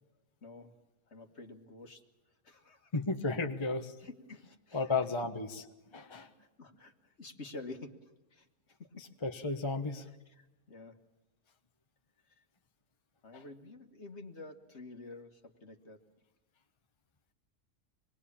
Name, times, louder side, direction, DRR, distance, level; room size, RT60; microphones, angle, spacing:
voice 1, 0.4-0.7 1.1-2.0 2.4-2.9 4.0-4.9 6.0-9.1 10.3-11.0 12.3-12.4 13.2-16.0, left 2 dB, 45° left, 5 dB, 1.9 m, -50 dB
voice 2, 2.9-4.0 4.7-5.6 5.9-6.3 9.0-10.1 13.3-13.4, left 3 dB, 20° left, 5 dB, 1.2 m, -34 dB
26.5 x 20.5 x 8.6 m, 1.0 s
omnidirectional pair, 1.6 m